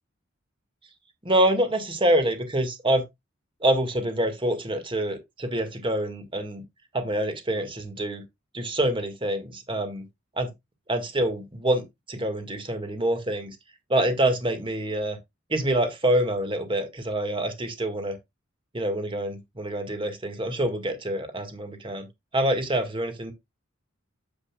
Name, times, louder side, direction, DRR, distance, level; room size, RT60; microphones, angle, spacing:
voice 1, 1.2-3.0 3.6-6.6 6.9-8.2 8.5-10.0 10.4-10.5 10.9-13.6 13.9-15.2 15.5-18.2 18.7-22.1 22.3-23.3, right 1 dB, 25° right, 1.9 m, -26 dB
9.7 x 7.9 x 2.3 m
head